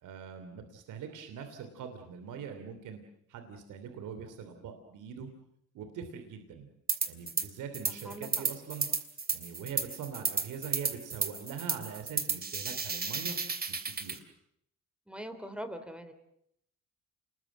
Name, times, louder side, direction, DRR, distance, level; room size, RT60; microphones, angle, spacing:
voice 1, 0.0-3.0 3.3-5.3 5.7-6.7 7.1-8.9 9.3-13.4 13.7-14.3, right 7 dB, 85° right, 7 dB, 3.1 m, -43 dB
sound 1, 6.9-7.5 7.7-14.2, right 4 dB, 30° right, 3.0 m, -33 dB
voice 2, 7.9-8.3 15.1-16.1, equal, 5° right, 9 dB, 3.3 m, -42 dB
29.0 x 21.0 x 7.5 m, 0.75 s
cardioid pair, 90°, 30 cm